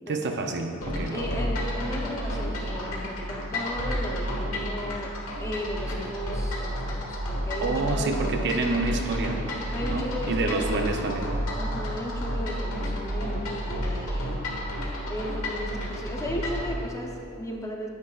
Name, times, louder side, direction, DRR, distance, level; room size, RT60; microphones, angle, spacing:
voice 1, 0.1-1.4 7.6-9.4 9.9-11.3, right 3 dB, 55° right, 4 dB, 0.6 m, -28 dB
sound 1, 0.8-16.7, equal, 70° left, 1.4 m, -31 dB
voice 2, 1.1-5.1 5.4-8.8 9.7-10.9 11.6-14.4 15.1-17.9, left 1 dB, 15° left, 0 dB, 0.7 m, -35 dB
9.3 x 8.7 x 2.4 m, 2.6 s
head